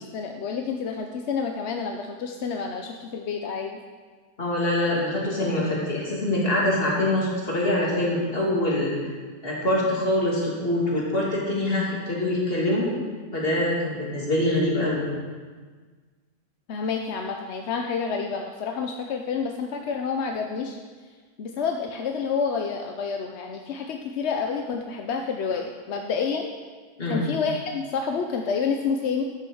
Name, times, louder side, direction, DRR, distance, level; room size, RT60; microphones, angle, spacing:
voice 1, 0.1-3.8 16.7-20.8 21.4-26.5 27.1-29.2, left 5 dB, 55° left, 3 dB, 0.8 m, -29 dB
voice 2, 4.4-8.9 9.4-12.9 13.3-15.1 27.0-27.2, left 1 dB, 35° left, -5 dB, 2.9 m, -24 dB
12.5 x 6.4 x 6.3 m, 1.5 s
omnidirectional pair, 1.7 m